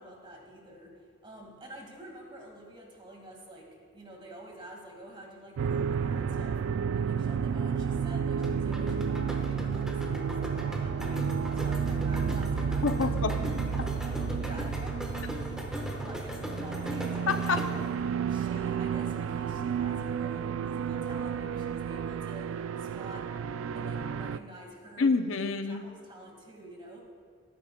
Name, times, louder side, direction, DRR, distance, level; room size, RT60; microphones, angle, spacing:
voice 1, 0.0-23.3 23.7-25.1 25.6-27.0, right 1 dB, 25° right, 0 dB, 1.9 m, -48 dB
sound 1, 5.6-24.4, right 7 dB, 85° right, 0.3 m, -31 dB
sound 2, 8.4-17.9, equal, 5° right, 1.1 m, -38 dB
voice 2, 12.8-13.3 17.3-17.6 25.0-25.8, left 4 dB, 85° left, 9 dB, 0.6 m, -27 dB
17.5 x 9.9 x 2.3 m, 2.2 s
head